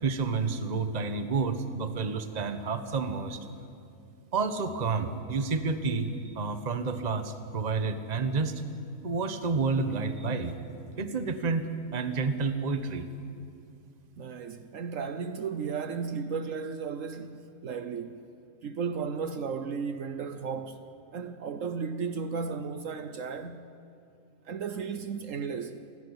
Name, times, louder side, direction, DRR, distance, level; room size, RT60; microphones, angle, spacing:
voice 1, 0.0-3.4 4.3-8.6 9.0-10.6 11.0-13.1, right 4 dB, 30° right, 1.1 m, -30 dB
voice 2, 14.2-18.3 18.6-20.8 21.1-23.7 24.4-25.9, right 5 dB, 65° right, 1.1 m, -34 dB
28.0 x 11.0 x 9.8 m
omnidirectional pair, 1.6 m